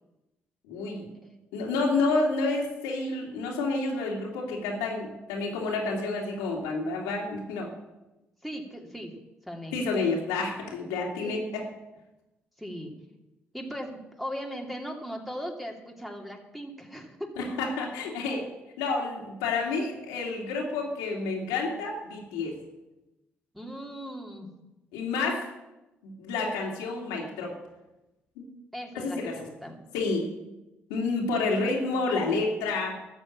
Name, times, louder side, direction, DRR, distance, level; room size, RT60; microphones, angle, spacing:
voice 1, 0.7-1.1 1.5-7.7 9.7-11.4 17.4-18.4 18.8-22.6 24.9-25.4 26.0-27.5 28.4-28.5 28.9-29.4 29.9-30.3 30.9-33.0, left 3 dB, 85° left, -1 dB, 2.7 m, -29 dB
voice 2, 8.4-9.2 9.4-9.8 11.2-11.4 12.6-12.9 13.5-17.4 23.5-24.5 28.7-29.8, equal, ahead, 1 dB, 2.9 m, -38 dB
13.0 x 6.8 x 8.7 m, 0.99 s
hypercardioid pair, 50°, 6 cm